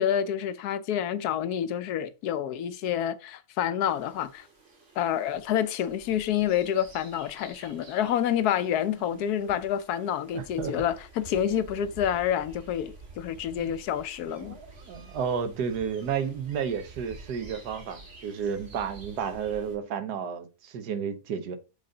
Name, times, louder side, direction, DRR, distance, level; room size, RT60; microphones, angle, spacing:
voice 1, 0.0-4.5 5.0-14.6, left 10 dB, 80° left, 1.1 m, -28 dB
sound 1, 3.9-19.8, right 2 dB, 50° right, 1.9 m, -49 dB
voice 2, 10.3-10.7 13.6-13.7 14.4-21.6, right 7 dB, 85° right, 1.4 m, -32 dB
6.8 x 4.0 x 3.8 m
omnidirectional pair, 1.7 m